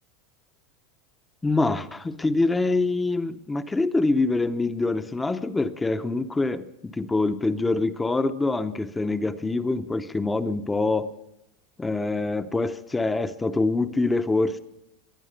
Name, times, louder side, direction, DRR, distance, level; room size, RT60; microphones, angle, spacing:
voice 1, 1.4-11.1 11.8-14.6, left 3 dB, 10° left, 10 dB, 0.6 m, -25 dB
20.5 x 9.7 x 6.5 m, 0.84 s
supercardioid pair, 160°, 0 cm